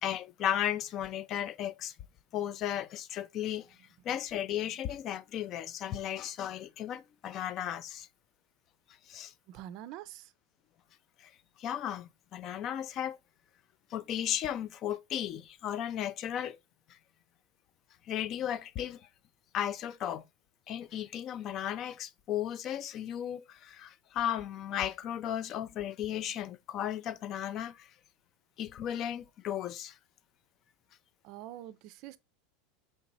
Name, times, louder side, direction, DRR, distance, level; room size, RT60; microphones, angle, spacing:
voice 1, 0.0-2.0 2.3-3.8 4.0-8.1 9.1-9.3 11.2-11.3 11.6-13.2 13.9-16.6 16.9-17.0 18.1-19.0 19.5-20.2 20.7-27.9 28.6-30.0, left 10 dB, 45° left, 0.3 m, -35 dB
voice 2, 9.5-10.3 31.2-32.2, right 13 dB, 55° right, 0.4 m, -45 dB
4.5 x 2.9 x 2.6 m
hypercardioid pair, 105°, 0 cm